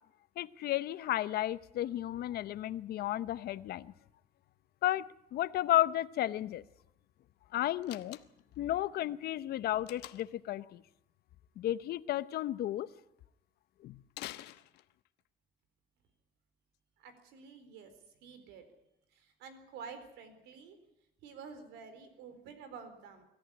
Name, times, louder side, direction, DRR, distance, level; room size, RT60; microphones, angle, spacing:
voice 1, 0.4-3.9 4.8-5.0 5.3-6.6 7.5-8.2 8.6-10.8 11.6-12.9 13.8-14.0, left 13 dB, 65° left, 17 dB, 0.8 m, -33 dB
Slam, 7.8-8.6 9.9-10.4 14.1-15.2, left 16 dB, 85° left, 1.1 m, -47 dB
voice 2, 17.0-17.9 18.2-18.6 19.1-20.8 21.2-23.3, right 5 dB, 85° right, 10 dB, 4.2 m, -49 dB
24.0 x 14.0 x 10.0 m, 0.85 s
cardioid pair, 110°, 17 cm